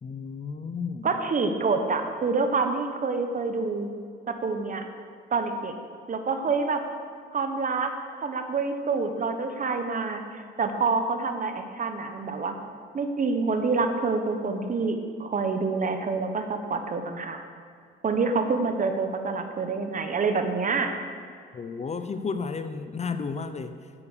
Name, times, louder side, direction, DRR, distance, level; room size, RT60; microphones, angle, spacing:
voice 1, 0.0-1.2 21.5-23.7, left 5 dB, 35° left, 9 dB, 0.7 m, -33 dB
voice 2, 1.0-3.9 4.3-4.9 5.3-5.7 6.1-6.8 7.3-7.9 8.2-12.5 12.9-17.5 18.0-20.9, right 4 dB, 40° right, 7 dB, 1.2 m, -27 dB
9.7 x 8.5 x 6.8 m, 2.2 s
cardioid pair, 90°, 20 cm